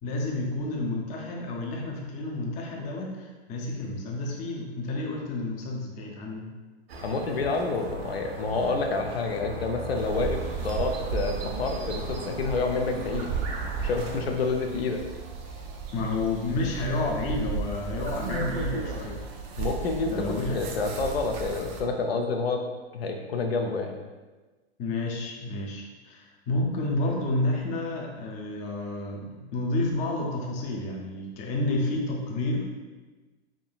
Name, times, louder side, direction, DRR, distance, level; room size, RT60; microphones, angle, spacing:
voice 1, 0.0-6.5 15.9-19.2 20.1-20.7 24.8-32.7, left 2 dB, 20° left, -1 dB, 0.6 m, -30 dB
sound 1, 6.9-14.2, right 2 dB, 60° right, 0.8 m, -39 dB
voice 2, 7.0-13.3 13.8-15.0 19.6-22.6 22.9-23.9, left 3 dB, 65° left, 3 dB, 0.6 m, -28 dB
sound 2, 10.0-21.8, right 5 dB, 25° right, 0.4 m, -34 dB
4.5 x 3.6 x 2.3 m, 1.2 s
figure-of-eight pair, 105°, 33 cm